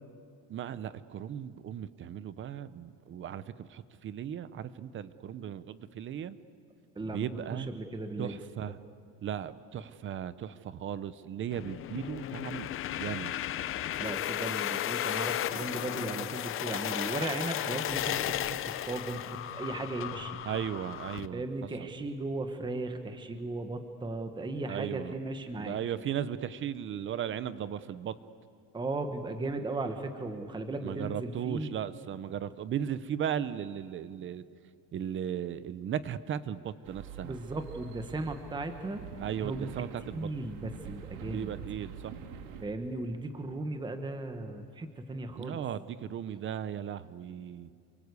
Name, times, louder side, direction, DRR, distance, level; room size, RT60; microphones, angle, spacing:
voice 1, 0.5-6.4 7.0-7.7 8.2-8.8 9.2-13.3 20.4-21.4 21.8-21.9 24.7-25.1 25.6-28.1 30.8-34.4 34.9-37.4 39.2-40.3 41.2-42.1 45.4-47.7, right 9 dB, 30° right, 15 dB, 0.7 m, -36 dB
voice 2, 7.0-8.4 14.0-20.4 21.3-25.8 28.7-31.7 37.2-39.0 39.4-39.7 40.1-41.5 42.6-45.6, right 2 dB, 10° right, 7 dB, 1.2 m, -36 dB
sound 1, 11.5-21.3, left 11 dB, 30° left, 0.6 m, -34 dB
sound 2, 36.8-42.7, right 7 dB, 80° right, 2.7 m, -46 dB
28.5 x 23.5 x 8.2 m, 2.3 s
cardioid pair, 165°, 44 cm